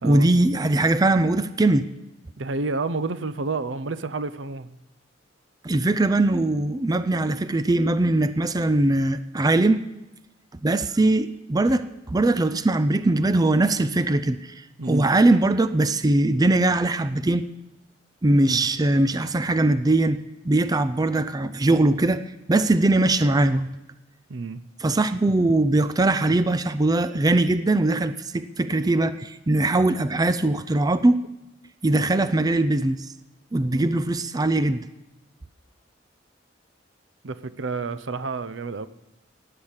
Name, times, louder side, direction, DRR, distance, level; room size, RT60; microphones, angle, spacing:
voice 1, 0.0-1.9 5.6-9.8 10.6-17.5 18.2-23.7 24.8-31.2 31.8-33.1 33.5-34.8, right 2 dB, 20° right, 0.5 m, -21 dB
voice 2, 2.4-4.7 14.8-15.1 18.3-18.6 24.3-24.6 33.7-33.9 37.2-38.9, right 3 dB, 75° right, 0.7 m, -30 dB
17.0 x 9.9 x 7.4 m
head